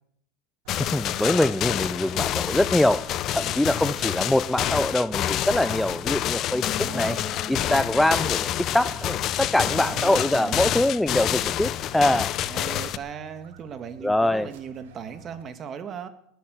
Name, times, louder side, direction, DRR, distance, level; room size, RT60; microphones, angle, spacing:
sound 1, 0.6-15.4, right 7 dB, 80° right, 2.1 m, -49 dB
sound 2, 0.7-13.0, left 12 dB, 45° left, 0.8 m, -28 dB
voice 1, 0.8-7.2 7.5-12.3 14.0-14.5, left 1 dB, 5° left, 14 dB, 0.5 m, -24 dB
sound 3, 6.3-10.0 10.3-10.4, left 6 dB, 25° left, 1.7 m, -42 dB
voice 2, 6.7-7.2 9.6-10.6 12.5-16.1, right 7 dB, 35° right, 9 dB, 2.0 m, -38 dB
19.0 x 8.8 x 7.9 m, 0.72 s
supercardioid pair, 125°, 0 cm